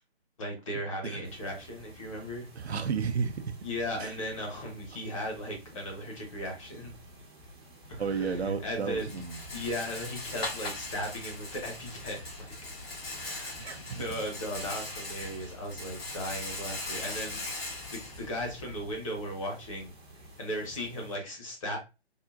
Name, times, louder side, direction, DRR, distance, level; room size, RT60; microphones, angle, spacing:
voice 1, 0.4-2.5 3.6-7.0 7.9-9.2 9.5-12.5 13.1-17.4 17.7-19.9 20.4-21.8, equal, 30° left, 1.0 m, -37 dB
sound 1, 1.2-21.2, equal, 25° right, 0.6 m, -52 dB
voice 2, 2.6-3.6 4.0-4.1 8.0-9.4 13.6-14.0, right 6 dB, 80° right, 0.6 m, -32 dB
Rattle, 7.9-19.0, left 2 dB, 65° left, 1.2 m, -40 dB
3.7 x 2.1 x 2.4 m
figure-of-eight pair, 145°, 32 cm